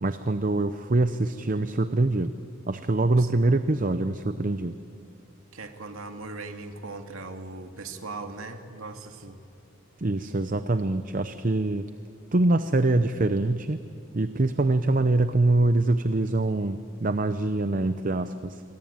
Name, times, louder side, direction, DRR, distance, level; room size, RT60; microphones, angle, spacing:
voice 1, 0.0-2.3 2.7-4.8 10.0-11.9 12.3-13.8 14.1-18.6, right 2 dB, 40° right, 11 dB, 0.7 m, -24 dB
voice 2, 5.5-9.4, right 3 dB, 85° right, 5 dB, 2.3 m, -39 dB
27.5 x 24.0 x 8.9 m, 2.5 s
head